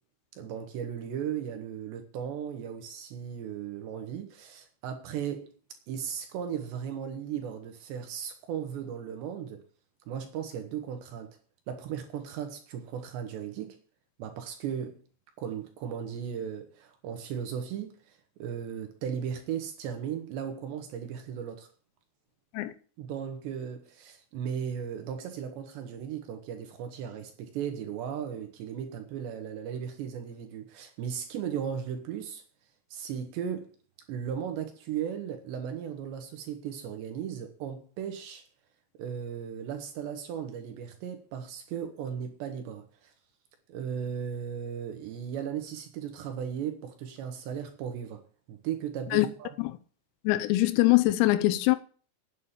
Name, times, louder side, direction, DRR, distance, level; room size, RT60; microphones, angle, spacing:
voice 1, 0.4-5.5 5.9-9.6 10.1-11.3 11.7-13.8 14.2-15.0 15.4-21.7 23.0-32.4 32.9-33.7 34.1-38.4 39.0-43.1 43.7-49.5, right 8 dB, 70° right, 3.1 m, -36 dB
voice 2, 50.3-51.8, left 18 dB, 90° left, 3.5 m, -23 dB
9.6 x 8.3 x 7.3 m
omnidirectional pair, 6.0 m